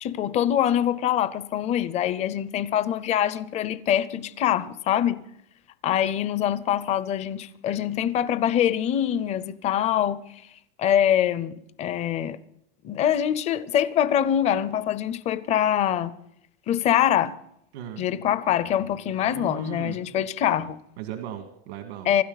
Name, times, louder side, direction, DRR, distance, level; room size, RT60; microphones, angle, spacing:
voice 1, 0.0-5.2 5.8-10.2 10.8-12.4 12.8-16.1 16.7-17.4 18.0-20.8 22.1-22.2, left 10 dB, 20° left, 0.5 m, -24 dB
voice 2, 17.7-18.1 19.2-20.2 21.0-22.1, right 9 dB, 90° right, 2.0 m, -37 dB
26.0 x 12.5 x 4.0 m
supercardioid pair, 170°, 32 cm